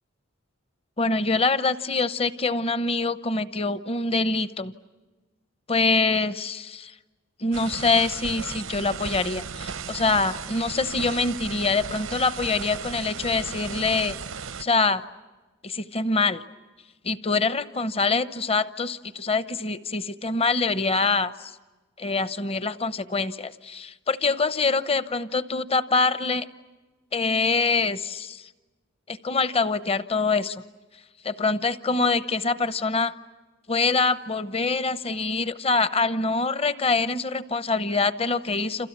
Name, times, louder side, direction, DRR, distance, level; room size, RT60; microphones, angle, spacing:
voice 1, 1.0-4.7 5.7-6.9 7.4-14.2 14.6-15.0 15.6-16.4 17.0-21.5 22.0-26.5 27.1-28.4 29.1-30.6 31.2-33.1 33.7-38.9, left 3 dB, 30° left, 13 dB, 0.9 m, -25 dB
sound 1, 7.5-14.6, right 6 dB, 85° right, 0.9 m, -36 dB
29.5 x 27.5 x 7.3 m, 1.2 s
head